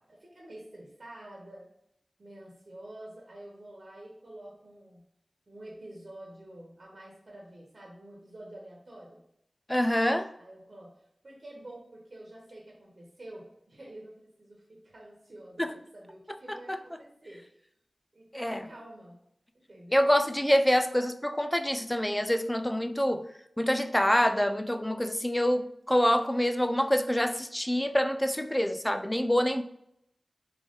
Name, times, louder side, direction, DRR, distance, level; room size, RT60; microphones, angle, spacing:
voice 1, 0.0-1.7 2.2-5.0 5.5-9.2 10.4-10.9 11.2-17.6 18.1-19.2 19.7-20.1, right 1 dB, 55° right, 1.2 m, -48 dB
voice 2, 9.7-10.3 15.6-15.7 16.3-16.8 18.3-18.7 19.9-23.3 23.6-29.6, equal, 10° left, 0.4 m, -26 dB
3.8 x 3.2 x 3.8 m
cardioid pair, 40°, 0 cm